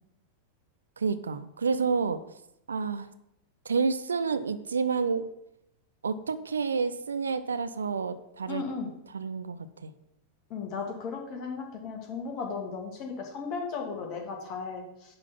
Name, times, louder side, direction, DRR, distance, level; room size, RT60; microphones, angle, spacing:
voice 1, 1.0-2.2 2.7-3.1 3.7-5.3 6.0-8.6 9.1-9.6 9.8-9.9, right 5 dB, 70° right, 12 dB, 0.5 m, -29 dB
voice 2, 8.5-8.9 10.5-15.2, left 5 dB, 40° left, 2 dB, 2.0 m, -36 dB
10.5 x 3.9 x 5.9 m, 0.83 s
figure-of-eight pair, 90°, 0 cm